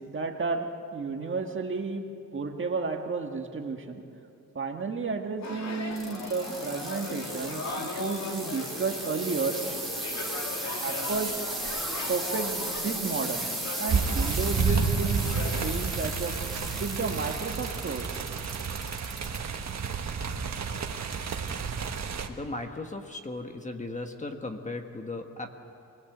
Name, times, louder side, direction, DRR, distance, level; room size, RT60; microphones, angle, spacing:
voice 1, 0.1-2.0 2.3-4.0 4.5-9.6 10.8-11.5 12.1-13.5 13.8-15.2 15.6-16.4 16.8-18.1, right 4 dB, 40° right, 3 dB, 1.7 m, -32 dB
sound 1, 5.4-15.7, left 3 dB, 55° left, 2.5 m, -38 dB
sound 2, 5.9-19.4 19.9-20.4 21.0-21.1, right 1 dB, ahead, 3.2 m, -36 dB
sound 3, 13.9-22.3, right 5 dB, 55° right, 1.5 m, -30 dB
voice 2, 22.3-25.6, left 2 dB, 20° left, 4 dB, 1.5 m, -37 dB
25.0 x 20.0 x 8.0 m, 2.7 s
wide cardioid pair, 140°, 32 cm